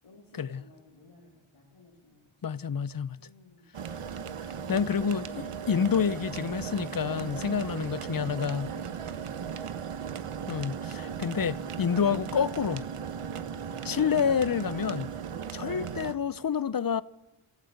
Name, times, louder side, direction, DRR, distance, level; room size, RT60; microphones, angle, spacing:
voice 1, 0.0-2.6 3.2-4.9 5.4-5.7 7.0-7.7 8.0-9.8, left 3 dB, 80° left, 4.2 m, -52 dB
voice 2, 2.4-3.2 4.7-8.7 10.5-12.9 13.8-15.1 15.5-17.0, left 7 dB, 45° left, 0.7 m, -28 dB
sound 1, 3.7-16.2, right 7 dB, 90° right, 1.1 m, -37 dB
25.5 x 14.0 x 8.1 m
cardioid pair, 50°, 50 cm